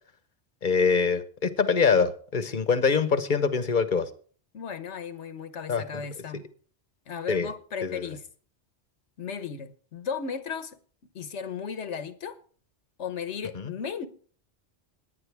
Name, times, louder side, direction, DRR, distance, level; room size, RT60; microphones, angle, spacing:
voice 1, 0.6-4.1 5.7-5.8 7.3-7.5 7.8-8.1 13.5-13.7, left 5 dB, 45° left, 1.1 m, -24 dB
voice 2, 4.5-6.4 7.1-8.2 9.2-10.8 11.1-12.4 13.0-14.1, left 6 dB, 85° left, 1.4 m, -35 dB
18.0 x 10.5 x 3.5 m
omnidirectional pair, 1.1 m